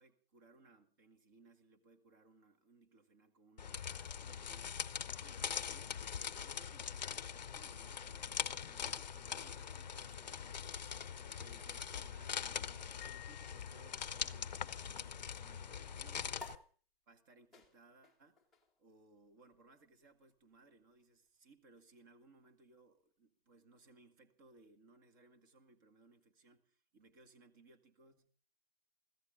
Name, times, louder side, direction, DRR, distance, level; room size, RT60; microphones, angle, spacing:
voice 1, 0.0-7.2 7.5-10.6 11.2-16.5 17.1-18.4 18.8-28.3, right 3 dB, 20° right, 1.7 m, -64 dB
sound 1, 3.6-16.5, left 7 dB, 45° left, 0.8 m, -42 dB
Piano, 13.0-14.5, left 21 dB, 25° left, 1.1 m, -56 dB
sound 2, 16.4-23.2, left 2 dB, ahead, 1.3 m, -59 dB
24.0 x 15.5 x 3.7 m
hypercardioid pair, 170°, 30 cm